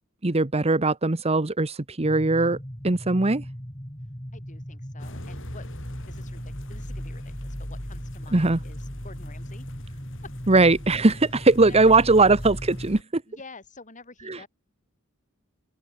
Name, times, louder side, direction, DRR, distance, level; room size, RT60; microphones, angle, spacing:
voice 1, 0.2-2.6 2.8-3.4 8.3-8.6 10.5-13.2 14.3-14.4, right 3 dB, 30° right, 1.1 m, -20 dB
sound 1, 2.0-12.9, equal, 15° left, 4.3 m, -39 dB
voice 2, 4.3-5.7 6.0-9.7 10.2-10.3 11.6-12.1 13.3-14.5, left 3 dB, 35° left, 5.4 m, -48 dB
sound 2, 5.0-13.0, equal, 65° left, 7.8 m, -40 dB
open air
head